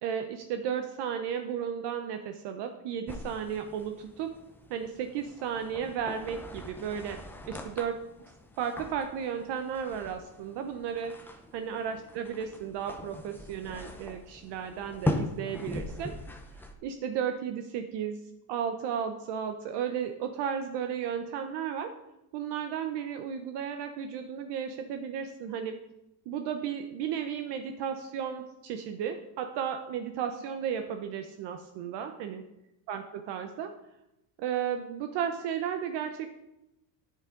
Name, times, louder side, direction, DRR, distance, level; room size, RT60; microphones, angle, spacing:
voice 1, 0.0-4.3 4.7-8.0 8.6-16.1 16.8-18.2 18.5-21.9 22.3-25.8 26.3-32.4 32.9-33.7 34.4-36.3, right 8 dB, 55° right, 6 dB, 0.8 m, -34 dB
sound 1, 3.1-16.7, left 1 dB, 5° left, 0.5 m, -40 dB
9.7 x 8.4 x 3.8 m, 0.88 s
cardioid pair, 150°, 49 cm